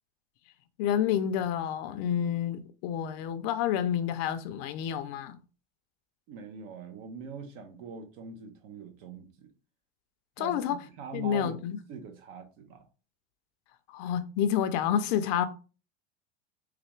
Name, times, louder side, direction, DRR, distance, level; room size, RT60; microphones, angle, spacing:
voice 1, 0.8-5.4 10.4-10.8 11.1-11.8 13.9-15.4, left 9 dB, 45° left, 0.4 m, -29 dB
voice 2, 6.3-9.5 10.4-11.6 11.9-12.9, right 6 dB, 60° right, 0.9 m, -43 dB
3.6 x 3.3 x 3.1 m
supercardioid pair, 150°, 33 cm